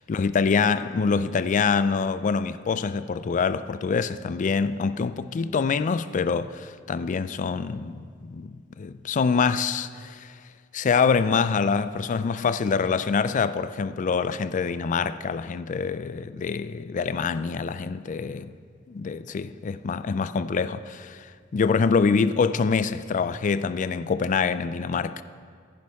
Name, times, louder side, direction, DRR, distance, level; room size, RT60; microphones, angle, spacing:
voice 1, 0.0-10.3 10.7-18.5 18.9-21.3 21.5-25.2, left 5 dB, 40° left, 0.3 m, -25 dB
15.0 x 10.5 x 3.5 m
head